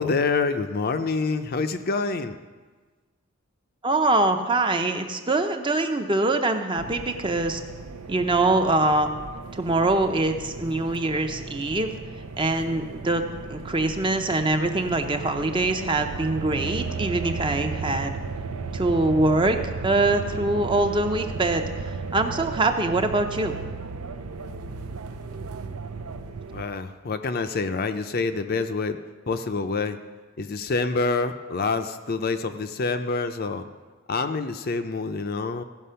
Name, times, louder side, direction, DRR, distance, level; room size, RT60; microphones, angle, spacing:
voice 1, 0.0-2.4 26.5-29.0 29.3-30.0 30.4-33.6 34.1-35.6, left 4 dB, 45° left, 8 dB, 0.5 m, -27 dB
voice 2, 3.8-7.6 8.1-9.1 9.5-11.9 12.4-13.2 13.5-18.2 18.7-23.6, right 2 dB, 20° right, 6 dB, 0.6 m, -24 dB
sound 1, 6.8-26.6, right 4 dB, 90° right, 0.7 m, -35 dB
15.5 x 5.8 x 5.6 m, 1.4 s
head